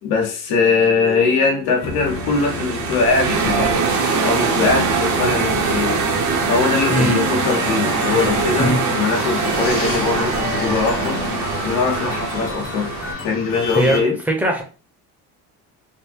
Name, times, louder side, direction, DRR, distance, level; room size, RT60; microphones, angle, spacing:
voice 1, 0.0-3.8 4.2-6.2 6.4-12.9 13.2-14.2, left 4 dB, 80° left, 1.3 m, -21 dB
sound 1, 0.5-13.3, left 4 dB, 40° left, 1.2 m, -33 dB
sound 2, 1.8-13.1, right 5 dB, 55° right, 0.8 m, -22 dB
sound 3, 6.7-14.0, left 4 dB, 65° left, 1.3 m, -32 dB
voice 2, 6.9-7.3 8.6-8.8 13.7-14.6, right 1 dB, 5° right, 0.7 m, -20 dB
3.7 x 2.1 x 4.3 m
cardioid pair, 155°, 36 cm